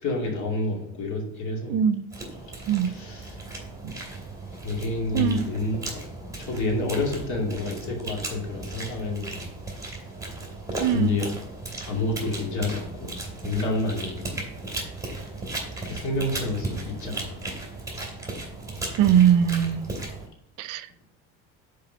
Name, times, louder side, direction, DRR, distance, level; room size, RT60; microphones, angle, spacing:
voice 1, 0.0-1.8 2.8-3.4 4.5-9.5 10.8-11.3 11.8-13.2 13.4-14.2 15.8-17.5, left 2 dB, 50° left, 2.6 m, -29 dB
voice 2, 1.7-2.0 2.7-2.9 3.8-3.9 5.1-5.5 10.8-11.1 19.0-19.9 20.6-20.9, right 9 dB, 60° right, 0.5 m, -21 dB
sound 1, 2.1-20.3, right 2 dB, 10° right, 2.6 m, -36 dB
5.6 x 5.0 x 5.5 m
supercardioid pair, 85°, 36 cm